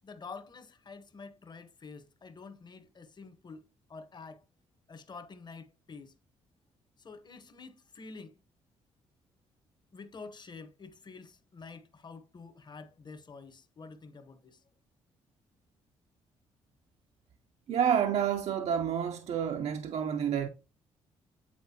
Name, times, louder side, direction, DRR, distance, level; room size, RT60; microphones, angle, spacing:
voice 1, 0.0-4.4 4.9-6.2 7.0-8.4 9.9-14.6, left 4 dB, 40° left, 0.9 m, -48 dB
voice 2, 17.7-20.5, right 8 dB, 60° right, 0.6 m, -29 dB
8.5 x 3.9 x 2.8 m
supercardioid pair, 65°, 12 cm